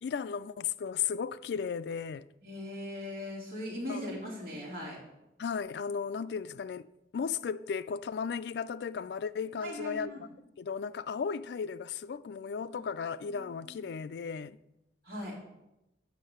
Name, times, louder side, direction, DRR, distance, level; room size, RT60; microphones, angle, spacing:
voice 1, 0.0-2.3 3.9-4.1 5.4-6.9 7.1-10.3 10.6-14.6, left 6 dB, 65° left, 0.3 m, -35 dB
voice 2, 2.4-5.0 9.6-10.2 13.3-13.8 15.0-15.4, left 1 dB, 55° right, 3.2 m, -39 dB
7.4 x 5.6 x 6.7 m
head